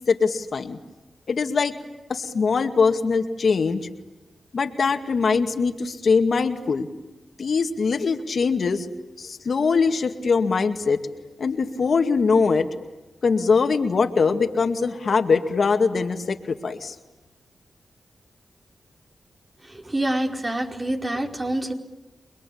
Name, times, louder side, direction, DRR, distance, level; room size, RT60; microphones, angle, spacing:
voice 1, 0.1-0.8 1.3-1.7 2.1-3.9 4.5-6.9 7.4-8.9 9.2-11.0 11.4-12.7 13.2-16.9, left 5 dB, 70° left, 6 dB, 2.2 m, -22 dB
voice 2, 19.6-21.7, right 1 dB, 30° right, 2 dB, 4.9 m, -26 dB
29.5 x 21.5 x 8.8 m, 1.1 s
cardioid pair, 45°, 0 cm